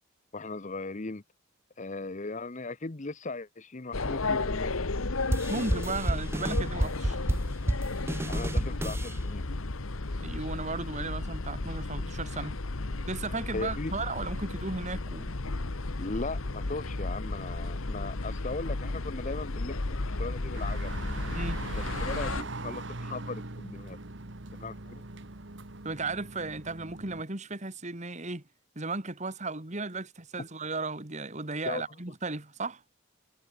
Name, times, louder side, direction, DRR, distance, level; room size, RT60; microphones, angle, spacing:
voice 1, 0.3-1.2 1.8-4.8 8.3-9.4 13.5-13.9 16.0-20.9 21.7-24.0 24.6-25.0 31.7-31.8, left 3 dB, 35° left, 0.9 m, -38 dB
sound 1, 3.9-22.4, left 2 dB, 80° left, 1.3 m, -33 dB
sound 2, 5.3-9.2, right 1 dB, 10° right, 0.5 m, -30 dB
voice 2, 5.5-7.2 10.2-12.6 13.1-15.4 21.3-21.6 25.8-28.4 28.8-32.8, right 3 dB, 35° right, 2.1 m, -35 dB
sound 3, 20.5-27.2, right 2 dB, 60° right, 1.8 m, -40 dB
head